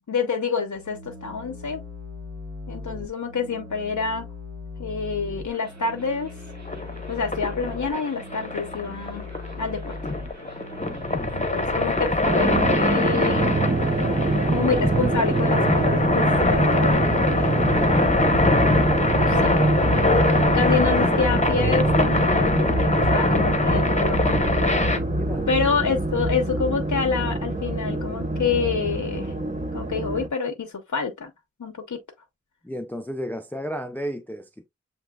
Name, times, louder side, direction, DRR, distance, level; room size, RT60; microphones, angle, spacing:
voice 1, 0.1-1.8 2.7-4.3 4.8-6.4 7.1-9.3 9.6-10.0 11.3-13.5 14.5-18.0 19.1-19.5 19.8-24.7 25.5-29.3 29.7-31.3 31.6-32.0, left 5 dB, 85° left, 0.8 m, -27 dB
sound 1, 0.8-16.1, right 1 dB, 65° right, 1.3 m, -36 dB
sound 2, 6.7-25.0, left 2 dB, 25° left, 0.9 m, -23 dB
voice 2, 10.8-11.4 25.0-25.5 32.6-34.7, equal, 5° left, 0.5 m, -33 dB
sound 3, 12.2-30.3, right 2 dB, 25° right, 0.9 m, -25 dB
7.4 x 3.0 x 2.3 m
wide cardioid pair, 50°, 29 cm